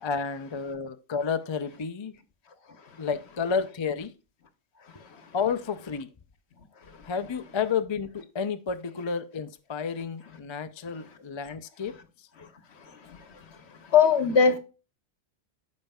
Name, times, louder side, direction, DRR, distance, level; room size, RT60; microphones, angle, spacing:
voice 1, 0.0-2.1 3.0-4.1 5.3-6.1 7.1-11.9, left 6 dB, 35° left, 0.4 m, -31 dB
voice 2, 12.8-13.6 13.8-14.6, left 6 dB, 65° left, 1.2 m, -23 dB
14.5 x 5.3 x 2.3 m
omnidirectional pair, 1.2 m